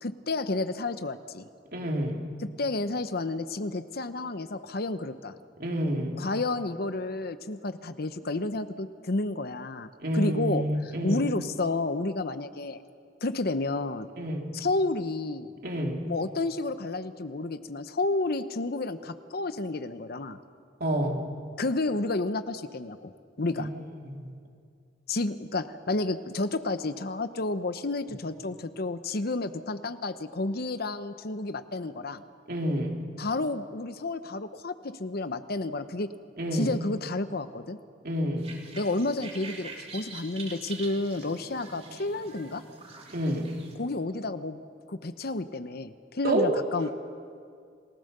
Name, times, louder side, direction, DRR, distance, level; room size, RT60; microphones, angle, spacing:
voice 1, 0.0-1.5 2.6-5.3 6.2-10.6 11.0-12.8 13.2-14.1 14.5-15.5 16.0-20.4 21.6-23.1 23.4-23.7 25.1-32.2 33.2-36.1 36.5-37.8 38.7-42.6 43.8-44.6 44.9-46.9, left 2 dB, 55° left, 11 dB, 0.9 m, -31 dB
voice 2, 1.7-2.2 5.6-6.2 10.0-11.2 14.2-14.5 15.6-16.0 20.8-21.2 23.6-23.7 24.0-24.3 32.5-32.9 36.4-36.7 38.0-38.5 43.1-43.5 46.2-46.9, right 1 dB, 55° right, 1 dB, 3.1 m, -28 dB
sound 1, 38.4-43.7, right 4 dB, 35° right, 3.1 m, -45 dB
29.5 x 19.5 x 6.8 m, 2.2 s
head